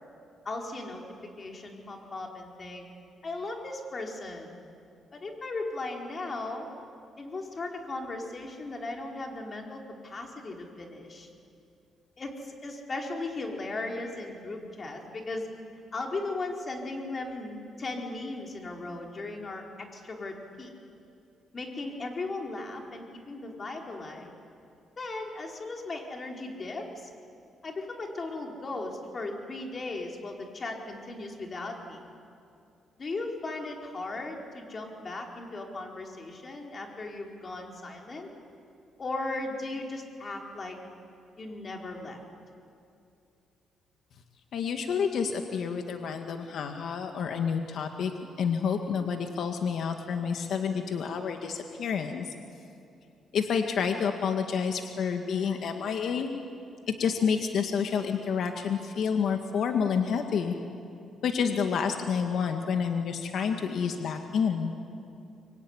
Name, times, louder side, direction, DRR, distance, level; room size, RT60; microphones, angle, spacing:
voice 1, 0.4-1.0 1.4-2.8 3.2-4.5 5.1-6.7 7.2-11.3 12.2-15.5 15.9-20.7 21.5-24.3 25.0-27.1 27.6-32.0 33.0-38.3 39.0-40.8 41.4-42.2, left 2 dB, 40° left, 1 dB, 4.8 m, -37 dB
voice 2, 44.5-48.1 48.4-52.3 53.3-56.3 57.0-60.6 61.2-64.7, left 6 dB, 65° left, 5 dB, 1.9 m, -29 dB
25.0 x 23.5 x 10.0 m, 2.6 s
cardioid pair, 85°, 0 cm